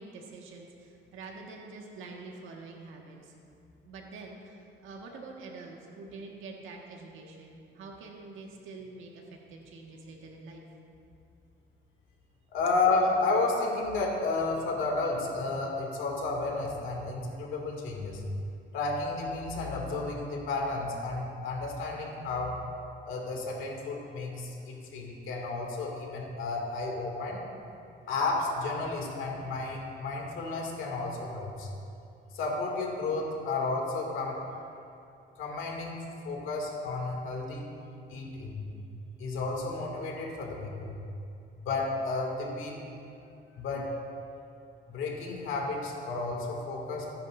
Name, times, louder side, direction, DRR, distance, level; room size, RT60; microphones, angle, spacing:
voice 1, 0.0-3.4 3.8-10.6, right 3 dB, 85° right, 0 dB, 1.8 m, -46 dB
voice 2, 12.5-18.3 18.7-22.6 23.0-27.4 28.1-31.7 32.3-34.4 35.4-37.7 38.1-38.7 39.2-41.0 41.6-42.8 43.6-44.0 44.9-47.1, left 3 dB, 85° left, -1 dB, 2.5 m, -32 dB
21.5 x 10.5 x 2.7 m, 2.6 s
cardioid pair, 90°, 20 cm